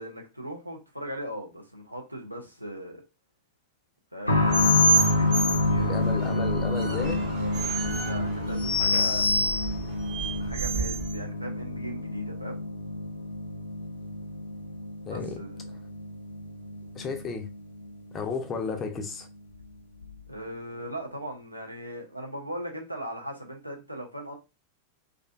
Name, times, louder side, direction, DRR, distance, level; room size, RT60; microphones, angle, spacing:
voice 1, 0.0-3.0 4.1-9.3 10.4-12.6 15.1-15.6 20.3-24.4, equal, 90° right, 0.5 m, -39 dB
sound 1, 4.3-18.7 19.0-19.1 20.0-20.1, left 2 dB, 85° left, 0.4 m, -29 dB
sound 2, 4.5-11.1, equal, 50° right, 0.8 m, -27 dB
voice 2, 5.8-7.2 15.1-15.4 16.9-17.5 18.1-19.3, left 5 dB, 25° left, 0.5 m, -33 dB
2.4 x 2.3 x 2.3 m
figure-of-eight pair, 90°, 0 cm